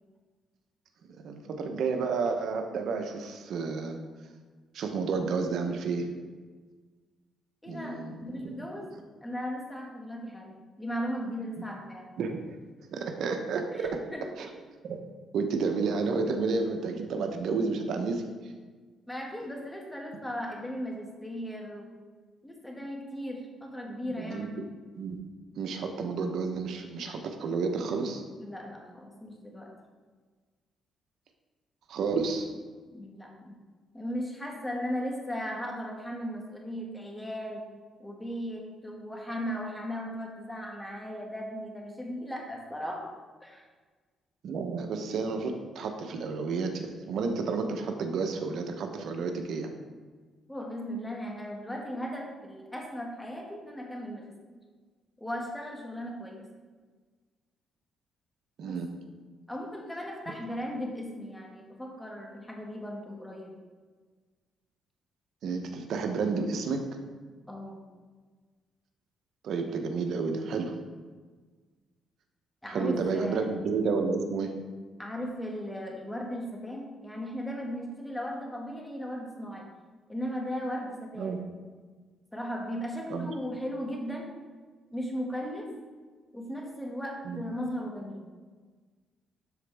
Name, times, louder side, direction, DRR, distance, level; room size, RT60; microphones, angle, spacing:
voice 1, 1.2-4.0 4.7-6.1 7.7-8.6 11.6-11.7 12.2-12.4 12.9-14.0 14.4-14.5 14.8-15.0 15.3-18.2 24.1-24.5 25.0-25.2 25.5-28.2 31.9-32.5 44.4-49.7 58.6-58.9 65.4-66.8 69.4-70.7 72.7-74.5 81.2-81.4 83.1-83.3 87.2-87.4, right 4 dB, 70° right, 5 dB, 0.9 m, -31 dB
voice 2, 7.6-8.9 9.2-12.1 13.7-14.5 19.1-21.9 22.4-24.7 28.4-29.7 32.9-33.6 33.9-37.7 38.0-43.1 43.4-43.6 50.5-54.3 55.2-56.5 58.7-58.8 59.5-63.5 67.5-67.8 72.6-73.5 75.0-79.7 80.1-81.4 82.3-84.3 84.9-85.7 86.3-88.2, equal, 10° left, -1 dB, 1.7 m, -37 dB
12.0 x 4.3 x 3.5 m, 1.4 s
cardioid pair, 90°, 0 cm